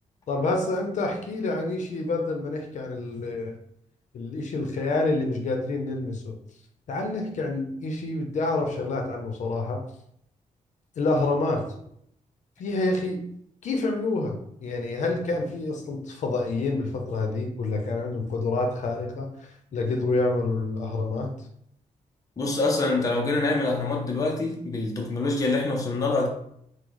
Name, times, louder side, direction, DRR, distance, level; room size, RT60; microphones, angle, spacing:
voice 1, 0.3-3.6 4.1-6.3 6.9-9.8 11.0-11.7 12.6-13.2 13.6-19.3 19.7-21.3, left 2 dB, 65° left, 0.8 m, -27 dB
voice 2, 22.4-26.3, left 2 dB, 25° left, 0.6 m, -25 dB
4.8 x 2.2 x 4.0 m
wide cardioid pair, 165°, 13 cm